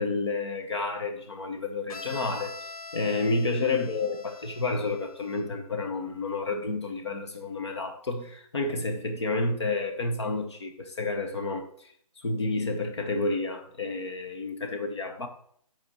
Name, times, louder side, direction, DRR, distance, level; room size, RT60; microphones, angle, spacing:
voice 1, 0.0-2.5 2.9-15.3, left 3 dB, 45° left, 1.0 m, -30 dB
Bowed string instrument, 1.9-5.6, left 3 dB, 70° left, 0.8 m, -44 dB
7.3 x 4.4 x 4.2 m
hypercardioid pair, 175°, 20 cm